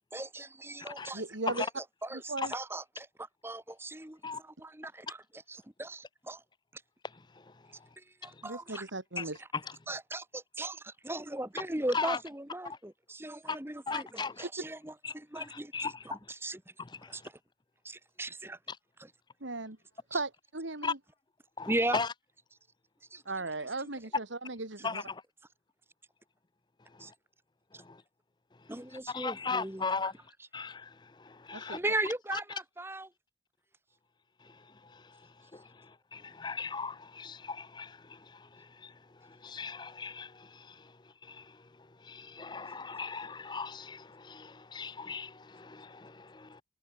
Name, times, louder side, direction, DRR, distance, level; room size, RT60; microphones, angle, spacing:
voice 1, 0.0-1.2 1.5-5.2 5.5-6.4 6.7-6.8 8.0-8.9 9.9-16.6 17.1-17.2 17.8-18.6 19.0-19.1 20.1-20.2 21.7-22.0 23.1-23.2 23.8-23.9 27.0-27.1 27.7-27.8 28.7-29.8 31.7-33.1, right 1 dB, 10° right, 1.2 m, -38 dB
voice 2, 1.1-1.6 2.3-2.5 8.4-9.4 19.4-19.8 20.1-21.0 23.2-25.0 31.5-31.8, right 3 dB, 80° right, 2.8 m, -37 dB
voice 3, 13.9-14.4 15.0-16.0 16.8-17.1 18.7-18.8 20.8-20.9 21.6-22.1 24.8-25.2 27.9-28.0 29.1-30.1 30.5-30.9 31.3-31.8 32.3-32.4 35.5-35.6 36.1-38.0 38.8-38.9 39.4-40.7 41.3-41.4 42.1-46.6, left 4 dB, 25° left, 0.6 m, -37 dB
head